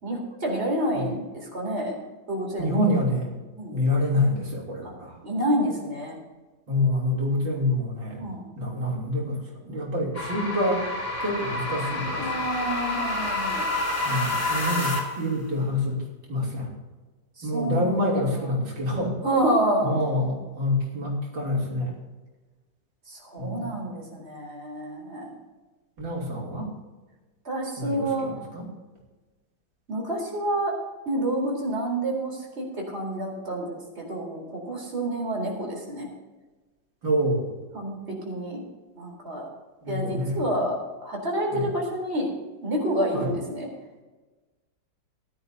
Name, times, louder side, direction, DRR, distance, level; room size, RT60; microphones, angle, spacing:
voice 1, 0.0-2.0 2.3-2.7 3.6-3.7 4.8-4.9 5.2-6.2 8.2-8.4 12.2-13.7 17.4-18.1 18.3-18.5 19.2-20.0 23.1-25.3 27.4-28.3 29.9-30.7 31.1-36.1 37.7-38.6 38.9-39.5 39.9-42.3 42.6-43.7, right 1 dB, 35° right, -1 dB, 4.1 m, -28 dB
voice 2, 2.6-3.3 3.7-5.2 6.7-8.3 8.6-10.8 11.2-12.3 14.0-16.0 16.3-16.7 17.4-19.2 19.8-21.9 23.4-23.7 26.0-26.7 27.8-28.7 37.0-37.6 39.8-40.4 41.5-41.7 43.1-43.3, left 1 dB, 85° right, -4 dB, 4.0 m, -27 dB
sound 1, 10.1-15.3, left 2 dB, 40° left, 2.9 m, -28 dB
19.0 x 12.0 x 2.8 m, 1.2 s
omnidirectional pair, 2.0 m